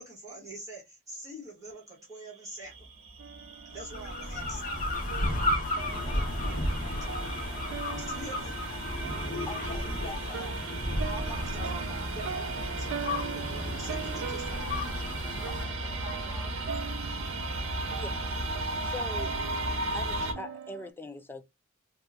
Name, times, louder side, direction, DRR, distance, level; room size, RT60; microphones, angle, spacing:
voice 1, 0.0-2.9 3.7-4.7 7.9-8.6 11.5-14.8, right 1 dB, 15° right, 1.4 m, -44 dB
sound 1, 2.6-20.3, right 2 dB, 85° right, 1.0 m, -36 dB
sound 2, 3.2-20.9, right 7 dB, 65° right, 0.3 m, -42 dB
sound 3, 3.8-15.6, left 1 dB, 40° left, 0.8 m, -34 dB
voice 2, 9.0-11.7 14.9-18.0 19.6-20.0, equal, 25° left, 1.2 m, -46 dB
voice 3, 18.0-18.5 18.8-19.3 19.9-21.4, left 2 dB, 10° left, 0.4 m, -42 dB
2.8 x 2.4 x 3.5 m
head